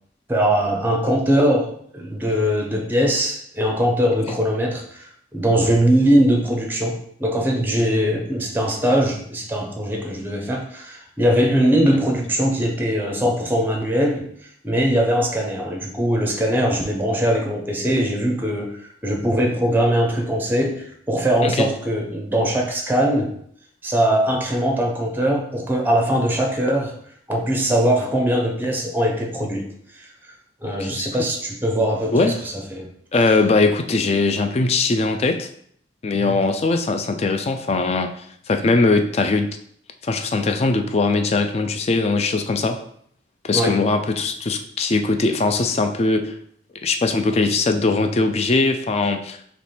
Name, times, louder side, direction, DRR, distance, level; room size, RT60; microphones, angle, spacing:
voice 1, 0.3-23.3 23.8-26.9 27.3-30.3 30.6-32.9 36.2-36.4 43.5-43.8, equal, 10° right, 1 dB, 0.6 m, -21 dB
voice 2, 33.1-35.5 36.0-38.1 38.5-39.5 40.0-42.8 43.4-46.3 46.8-49.4, left 3 dB, 35° left, 7 dB, 0.3 m, -20 dB
3.3 x 3.0 x 4.2 m, 0.65 s
head